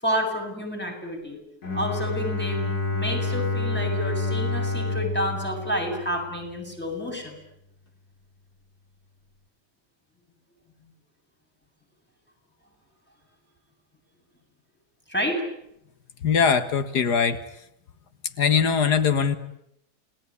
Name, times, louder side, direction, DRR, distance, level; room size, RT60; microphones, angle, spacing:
voice 1, 0.0-1.4 1.7-7.4 15.1-15.4, equal, 5° left, 1 dB, 8.0 m, -29 dB
Bowed string instrument, 1.6-6.5, left 3 dB, 70° left, 4.1 m, -28 dB
voice 2, 16.2-17.4 18.4-19.4, left 6 dB, 90° left, 11 dB, 2.1 m, -21 dB
29.0 x 20.5 x 9.9 m, 0.79 s
omnidirectional pair, 1.7 m